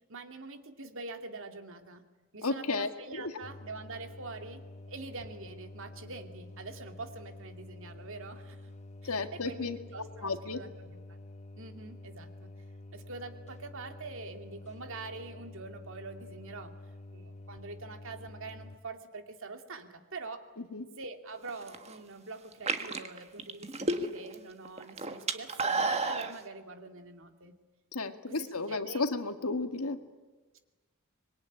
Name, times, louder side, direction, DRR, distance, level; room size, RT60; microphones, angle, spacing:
voice 1, 0.1-2.0 2.3-4.6 4.9-8.7 9.0-11.0 11.6-12.5 12.9-16.8 17.1-20.4 21.0-27.6 28.3-29.1 30.5-30.6, right 3 dB, 60° right, 6 dB, 2.5 m, -45 dB
voice 2, 2.4-2.9 3.2-3.3 9.0-9.8 10.2-10.6 20.7-20.9 27.9-30.0, left 3 dB, 75° left, 8 dB, 1.9 m, -33 dB
sound 1, 3.4-18.8, left 2 dB, 30° left, 0.8 m, -48 dB
sound 2, 21.5-21.9 22.5-24.4 24.7-26.3, right 3 dB, 30° right, 1.6 m, -31 dB
25.5 x 22.0 x 9.9 m, 1.2 s
head